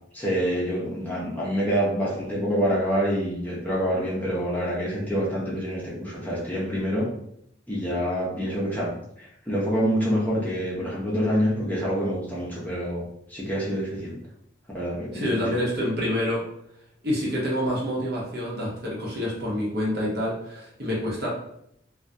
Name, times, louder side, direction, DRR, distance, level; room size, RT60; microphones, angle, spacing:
voice 1, 0.1-7.1 7.7-14.2 14.7-15.5, equal, 10° left, -6 dB, 0.5 m, -27 dB
voice 2, 15.1-16.4 17.0-21.3, left 1 dB, 60° right, -4 dB, 0.8 m, -27 dB
2.2 x 2.1 x 2.6 m, 0.72 s
head